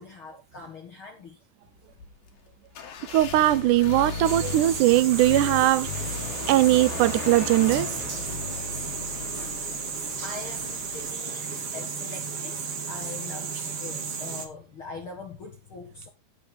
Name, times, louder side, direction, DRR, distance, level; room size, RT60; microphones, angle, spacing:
voice 1, 0.0-1.4 10.2-16.1, left 4 dB, 45° left, 2.0 m, -42 dB
sound 1, 1.9-11.1, left 5 dB, 80° left, 3.7 m, -36 dB
voice 2, 3.1-5.9 6.5-8.0, right 15 dB, 75° right, 2.0 m, -20 dB
sound 2, 4.2-14.5, right 5 dB, 45° right, 2.8 m, -34 dB
15.0 x 6.6 x 4.0 m
omnidirectional pair, 4.0 m